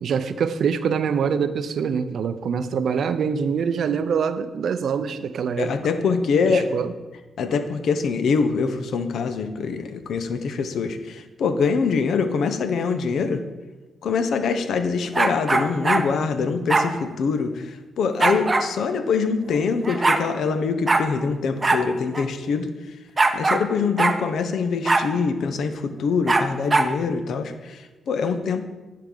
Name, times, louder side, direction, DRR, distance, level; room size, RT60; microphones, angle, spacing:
voice 1, 0.0-5.7 6.4-6.9, right 6 dB, 70° right, 12 dB, 0.5 m, -24 dB
voice 2, 5.6-6.7 7.4-13.4 14.0-17.5 18.0-22.7 23.3-27.5 28.1-28.6, left 5 dB, 75° left, 9 dB, 0.7 m, -24 dB
sound 1, 15.1-16.1 16.7-16.9 18.2-18.7 19.6-19.7 19.8-20.2 20.9-21.1 21.6-21.8 22.1-22.2 23.2-23.7 24.0-24.2 24.9-25.1 26.3-26.9, right 3 dB, 25° right, 0.6 m, -20 dB
10.5 x 4.7 x 3.8 m, 1.2 s
cardioid pair, 85°, 0 cm